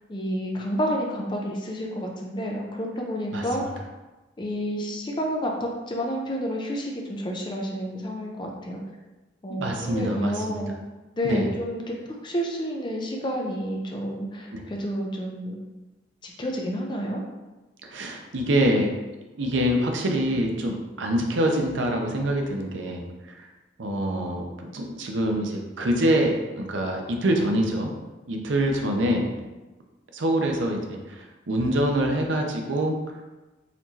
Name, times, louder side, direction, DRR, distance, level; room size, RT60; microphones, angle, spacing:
voice 1, 0.1-3.9 4.4-8.8 9.4-10.7 11.2-11.8 12.1-15.6 16.2-17.2, equal, 25° left, 0 dB, 0.5 m, -30 dB
voice 2, 3.3-3.7 9.5-10.6 11.2-11.5 14.5-14.6 17.8-18.9 19.4-23.0 23.8-27.9 28.3-29.3 30.1-33.0, right 1 dB, 85° right, 2 dB, 0.6 m, -25 dB
4.2 x 3.0 x 2.8 m, 1.1 s
head